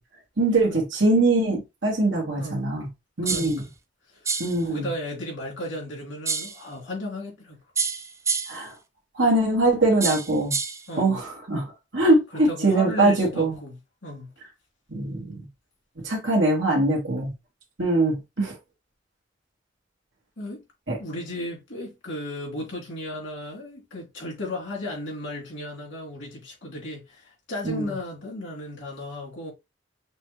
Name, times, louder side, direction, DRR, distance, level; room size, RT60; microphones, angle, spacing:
voice 1, 0.4-2.9 3.2-3.6 4.4-4.9 8.5-8.7 9.1-10.6 11.0-13.5 14.9-15.5 16.0-17.3 17.8-18.5 20.9-21.0 27.6-27.8, right 2 dB, 80° right, 1.5 m, -22 dB
voice 2, 2.4-2.8 3.2-3.5 4.1-7.6 10.9-11.2 12.3-14.3 20.4-20.6 21.0-29.5, left 1 dB, 85° left, 2.7 m, -35 dB
sound 1, 3.3-3.6 4.3-4.6 6.3-6.6 7.8-8.7 10.0-10.9, right 5 dB, 15° right, 0.4 m, -28 dB
6.0 x 2.3 x 3.0 m
head